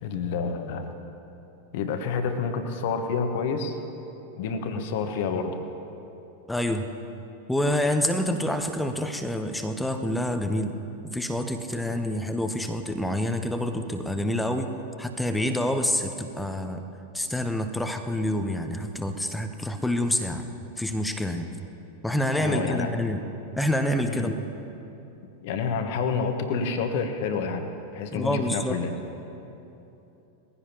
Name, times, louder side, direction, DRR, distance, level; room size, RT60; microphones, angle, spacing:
voice 1, 0.0-0.9 1.7-3.8 4.4-5.6 22.4-22.9 24.1-24.3 25.4-28.9, left 5 dB, 50° left, 6 dB, 1.3 m, -28 dB
voice 2, 6.5-6.9 7.5-10.8 11.0-16.8 17.1-20.5 20.8-21.5 22.0-23.2 23.6-24.4 28.1-28.8, left 1 dB, 5° left, 6 dB, 0.9 m, -27 dB
21.0 x 15.5 x 2.9 m, 2.9 s
figure-of-eight pair, 90°, 0 cm